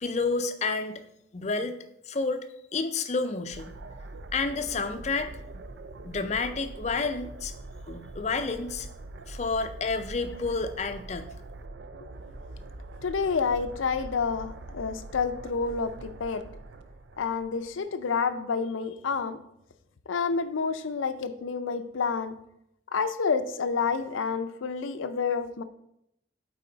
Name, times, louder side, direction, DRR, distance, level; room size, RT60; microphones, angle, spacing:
voice 1, 0.0-1.0 1.3-1.7 2.1-2.4 2.7-3.7 4.3-5.3 6.0-7.5 7.9-8.9 9.3-11.3, left 4 dB, 35° left, 9 dB, 0.5 m, -30 dB
sound 1, 3.5-17.8, right 2 dB, 65° right, 0.5 m, -43 dB
voice 2, 13.0-16.4 17.2-19.4 20.1-22.4 22.9-25.6, left 5 dB, 85° left, 11 dB, 0.5 m, -29 dB
8.5 x 4.2 x 3.8 m, 0.79 s
head